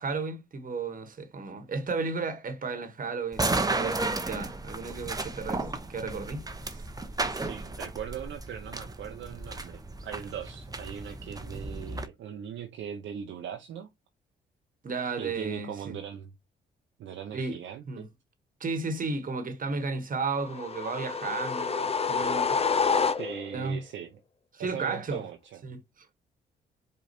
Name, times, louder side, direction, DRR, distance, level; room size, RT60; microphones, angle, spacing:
voice 1, 0.0-6.4 6.7-6.9 14.8-16.0 17.3-17.6 17.9-18.1 18.6-22.6 23.5-23.8 24.5-25.2 25.6-26.1, right 4 dB, 40° right, 1.3 m, -34 dB
sound 1, 3.3-12.1, right 2 dB, 20° right, 0.8 m, -34 dB
voice 2, 7.3-13.9 15.2-16.3 17.0-18.1 23.2-24.2 24.6-25.6, right 9 dB, 65° right, 0.7 m, -40 dB
sound 2, 20.4-23.6, left 5 dB, 30° left, 0.6 m, -28 dB
5.0 x 2.3 x 4.3 m
hypercardioid pair, 50°, 21 cm